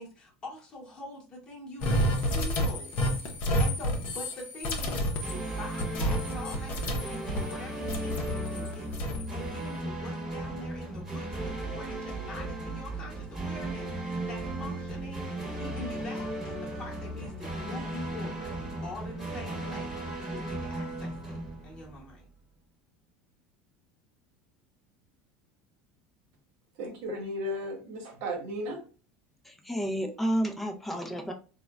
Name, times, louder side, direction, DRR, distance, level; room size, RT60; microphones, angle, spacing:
voice 1, 0.0-2.9 3.6-21.4 21.6-22.2, left 2 dB, 20° left, -3 dB, 0.9 m, -44 dB
sound 1, 1.8-7.6 7.9-9.3, equal, 45° left, 0.6 m, -30 dB
sound 2, 5.2-22.2, right 1 dB, 15° right, 0.9 m, -36 dB
voice 2, 26.8-28.8, equal, 60° right, 2 dB, 0.9 m, -35 dB
voice 3, 29.4-31.3, right 1 dB, 5° left, 4 dB, 0.4 m, -31 dB
3.7 x 2.1 x 2.3 m, 0.36 s
supercardioid pair, 155°, 4 cm